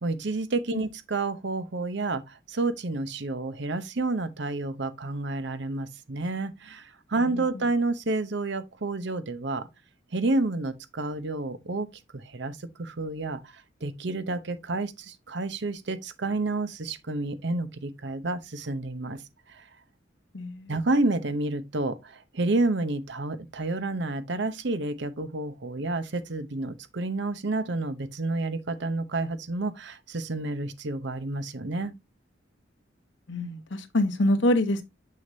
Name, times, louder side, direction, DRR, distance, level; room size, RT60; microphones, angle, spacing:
voice 1, 0.0-9.7 10.1-11.9 12.1-19.2 19.5-19.7 20.7-31.9, right 2 dB, 65° right, 0.9 m, -30 dB
voice 2, 7.2-7.6 20.3-20.7 33.3-34.8, left 1 dB, 70° left, 1.2 m, -26 dB
7.1 x 6.5 x 2.7 m
head